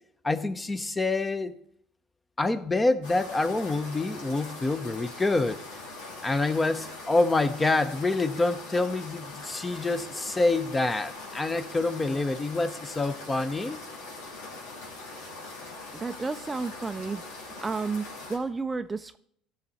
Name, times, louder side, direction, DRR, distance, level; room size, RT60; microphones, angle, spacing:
voice 1, 0.2-1.5 2.4-5.6 6.2-13.8, left 2 dB, 15° left, 12 dB, 0.8 m, -27 dB
sound 1, 3.0-18.4, left 2 dB, 90° left, 3.1 m, -42 dB
voice 2, 15.9-17.2 17.6-19.2, right 4 dB, 20° right, 10 dB, 0.4 m, -32 dB
16.0 x 6.4 x 4.2 m, 0.71 s
supercardioid pair, 95°, 0 cm